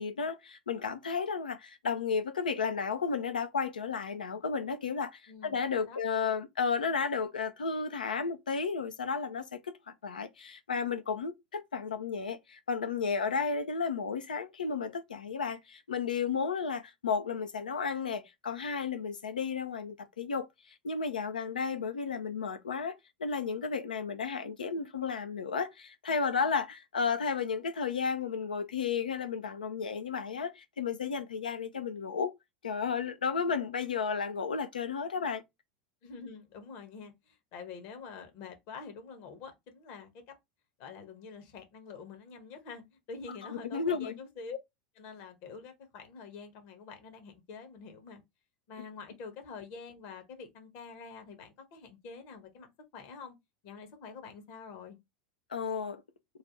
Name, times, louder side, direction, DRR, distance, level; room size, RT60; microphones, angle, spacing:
voice 1, 0.0-9.7 10.0-32.3 32.6-35.4 43.7-44.2 55.5-56.0, left 5 dB, 75° left, 0.5 m, -33 dB
voice 2, 5.3-6.0 36.0-40.1 40.8-44.6 44.9-48.2 48.7-52.7 52.9-53.3 53.6-55.0, left 5 dB, 50° left, 1.1 m, -46 dB
3.3 x 2.4 x 3.9 m
figure-of-eight pair, 80°, 5 cm